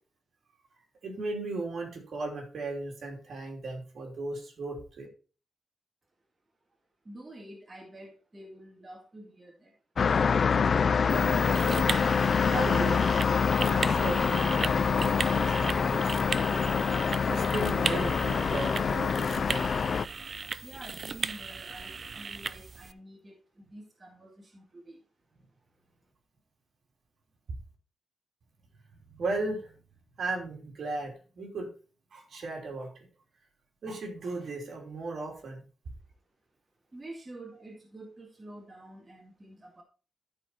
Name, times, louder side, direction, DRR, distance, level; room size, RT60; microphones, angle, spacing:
voice 1, 1.0-5.1 12.5-13.1 13.7-16.1 16.4-16.6 17.3-19.6 29.1-29.7 30.2-31.7 32.1-32.9 33.8-35.6, right 2 dB, 60° right, 1 dB, 3.1 m, -36 dB
voice 2, 7.1-9.7 20.6-25.0 36.9-39.8, right 1 dB, 20° right, 0 dB, 2.0 m, -48 dB
sound 1, 10.0-20.1, left 6 dB, 50° left, 0.4 m, -26 dB
sound 2, 11.1-22.9, right 5 dB, 40° right, 0.4 m, -37 dB
13.0 x 4.5 x 4.2 m, 0.36 s
wide cardioid pair, 135°, 0 cm